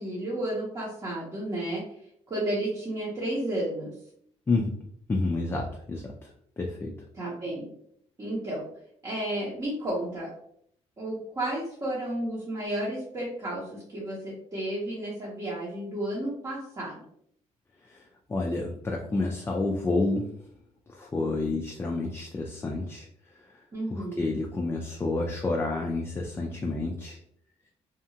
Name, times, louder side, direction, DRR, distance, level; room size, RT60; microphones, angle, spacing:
voice 1, 0.0-1.8 2.3-3.9 7.1-7.7 8.2-8.6 9.0-10.3 11.0-17.0 23.7-24.3, right 1 dB, 30° right, -6 dB, 0.8 m, -32 dB
voice 2, 5.1-6.3 6.6-6.9 17.9-18.0 18.3-20.3 20.9-23.1 23.5-23.6 23.9-27.2, left 2 dB, 20° left, 0 dB, 0.3 m, -29 dB
2.8 x 2.3 x 2.7 m, 0.67 s
cardioid pair, 120°, 12 cm